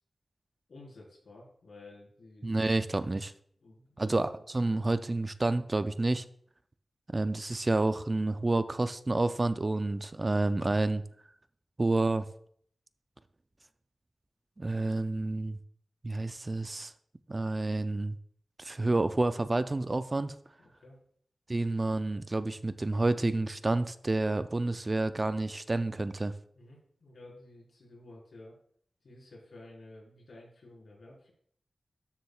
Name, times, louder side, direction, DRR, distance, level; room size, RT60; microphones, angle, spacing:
voice 1, 0.7-2.5 3.6-4.2 20.6-21.0 26.5-28.6 29.0-31.3, left 2 dB, 70° left, -3 dB, 4.1 m, -52 dB
voice 2, 2.4-3.3 4.0-6.2 7.1-11.0 11.8-12.3 14.6-15.6 16.0-16.9 17.3-18.2 18.6-20.4 21.5-26.3, right 2 dB, 30° right, 11 dB, 0.4 m, -29 dB
13.0 x 7.2 x 2.3 m, 0.63 s
wide cardioid pair, 110°, 0 cm